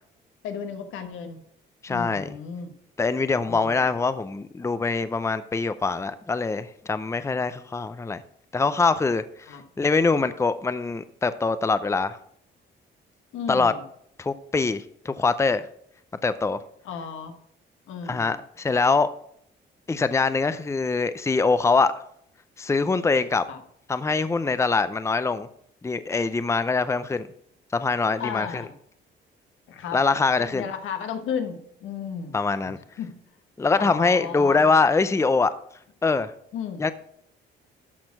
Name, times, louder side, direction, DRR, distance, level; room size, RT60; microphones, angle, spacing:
voice 1, 0.4-1.4 1.9-2.7 3.4-3.9 9.5-9.6 13.3-13.8 16.8-17.4 17.9-18.4 23.5-23.6 28.2-28.7 29.7-30.0 30.4-32.4 32.6-33.1 33.8-34.8 36.5-36.8, left 7 dB, 85° left, 1.2 m, -34 dB
voice 2, 1.8-2.3 3.0-8.2 8.5-9.5 9.8-12.2 13.5-13.7 14.2-15.6 16.2-16.6 18.1-19.1 19.9-21.9 22.6-23.4 23.9-25.5 25.8-27.3 27.7-28.6 29.9-30.7 32.3-32.8 33.6-35.5 36.0-36.3 36.8-36.9, left 4 dB, 15° left, 0.5 m, -23 dB
13.0 x 4.4 x 5.8 m
cardioid pair, 90°, 20 cm